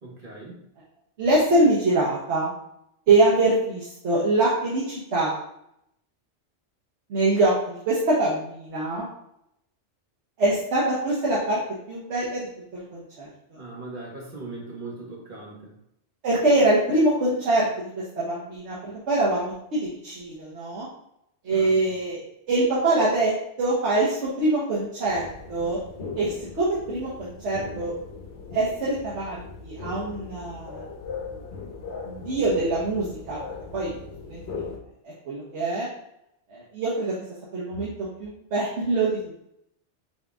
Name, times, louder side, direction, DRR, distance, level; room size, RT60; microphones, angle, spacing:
voice 1, 0.0-0.6 13.5-15.8 21.5-21.8, right 2 dB, 45° right, -3 dB, 1.2 m, -39 dB
voice 2, 1.2-2.5 3.1-5.4 7.1-9.1 10.4-11.6 11.9-12.5 12.9-13.6 16.2-20.9 21.4-22.2 22.5-25.8 26.2-27.9 28.5-30.8 32.0-33.4 33.7-33.9 34.3-34.6 35.0-35.9 36.5-37.1 37.5-39.4, right 2 dB, 75° right, -6 dB, 1.2 m, -24 dB
sound 1, 25.1-34.8, left 4 dB, 70° left, 0.9 m, -39 dB
4.2 x 3.7 x 2.3 m, 0.78 s
omnidirectional pair, 1.2 m